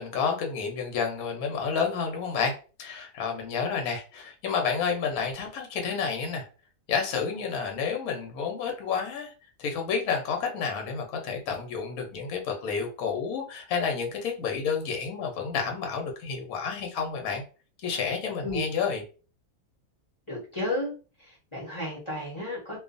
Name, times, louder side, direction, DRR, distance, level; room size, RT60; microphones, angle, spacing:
voice 1, 0.0-2.5 2.8-6.5 6.9-9.3 9.6-17.4 17.8-19.0, left 6 dB, 75° left, 3 dB, 1.1 m, -30 dB
voice 2, 20.3-20.9 21.2-22.8, left 1 dB, 25° left, -5 dB, 0.8 m, -33 dB
2.4 x 2.3 x 2.5 m, 0.36 s
omnidirectional pair, 1.5 m